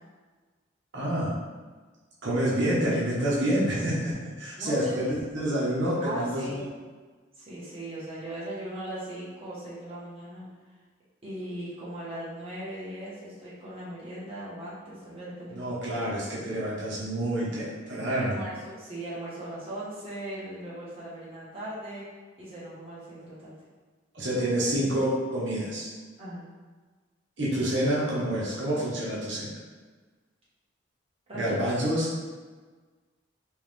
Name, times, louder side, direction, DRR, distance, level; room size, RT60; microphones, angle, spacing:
voice 1, 0.9-1.3 2.2-6.6 15.5-18.4 24.1-25.9 27.4-29.5 31.3-32.2, right 1 dB, 70° right, -7 dB, 1.0 m, -28 dB
voice 2, 4.6-5.1 6.0-6.6 7.4-10.5 11.2-16.0 18.2-22.0 22.4-23.5 26.2-26.5 31.3-31.5, right 1 dB, 30° right, -9 dB, 1.1 m, -39 dB
3.4 x 3.1 x 3.3 m, 1.4 s
head